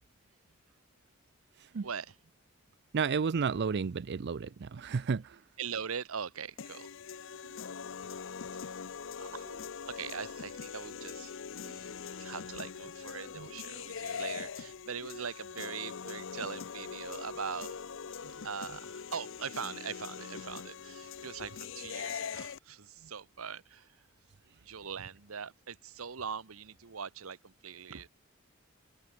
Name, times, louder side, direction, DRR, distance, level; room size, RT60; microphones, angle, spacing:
voice 1, 1.8-2.2 5.6-6.9 9.2-9.6 9.9-11.3 11.6-17.8 18.4-24.0 24.6-28.1, right 6 dB, 80° right, 1.0 m, -41 dB
voice 2, 2.9-5.4 11.6-11.8 13.4-13.5, right 5 dB, 55° right, 0.5 m, -32 dB
sound 1, 6.6-22.6, left 6 dB, 65° left, 0.6 m, -42 dB
head